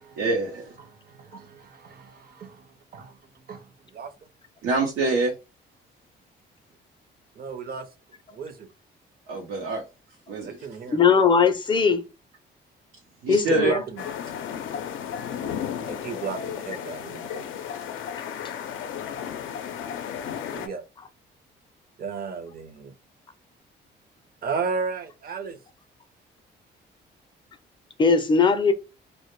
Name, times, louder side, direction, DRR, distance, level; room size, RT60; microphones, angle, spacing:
voice 1, 0.2-0.7 4.6-5.3 9.3-9.8 10.3-10.6 13.2-13.7, right 3 dB, 90° right, 0.6 m, -25 dB
voice 2, 0.8-3.2 3.5-4.1 7.4-7.9 8.3-8.7 10.4-11.0 13.3-14.1 15.9-17.5 20.5-20.8 22.0-22.9 24.4-25.6, right 5 dB, 50° right, 0.6 m, -34 dB
voice 3, 10.9-12.0 13.3-13.8 28.0-28.7, left 5 dB, 25° left, 0.4 m, -19 dB
sound 1, 14.0-20.7, left 8 dB, 80° left, 0.4 m, -34 dB
2.1 x 2.1 x 3.0 m
cardioid pair, 90°, 20 cm